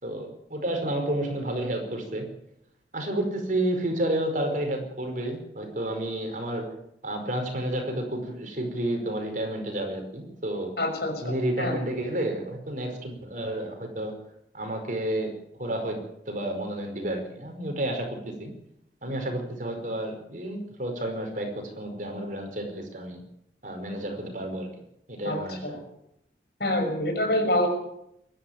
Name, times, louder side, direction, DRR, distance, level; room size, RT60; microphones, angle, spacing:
voice 1, 0.0-2.3 2.9-6.7 7.0-10.7 11.2-14.1 14.5-15.3 15.6-16.0 16.3-18.5 19.0-23.2 23.6-24.7 25.1-25.8, right 1 dB, 45° right, 4 dB, 5.1 m, -30 dB
voice 2, 10.8-11.8 25.2-25.8 26.6-27.7, left 1 dB, 60° left, 4 dB, 6.1 m, -27 dB
23.0 x 12.0 x 9.5 m, 0.79 s
head